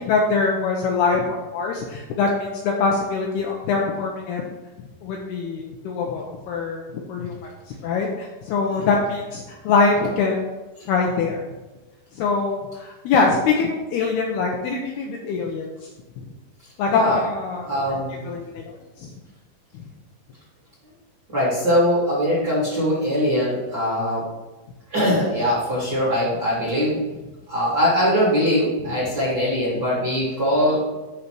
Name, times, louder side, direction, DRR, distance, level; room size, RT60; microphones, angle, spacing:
voice 1, 0.1-4.4 5.0-10.4 10.9-11.4 12.1-15.9 16.2-16.3 16.8-17.9 18.2-19.1 19.7-19.8, left 4 dB, 75° left, 0 dB, 2.5 m, -23 dB
voice 2, 17.6-18.2 21.3-24.2 24.9-27.0 27.5-30.8, equal, 30° right, -7 dB, 2.4 m, -21 dB
11.0 x 4.1 x 6.1 m, 1.1 s
omnidirectional pair, 5.4 m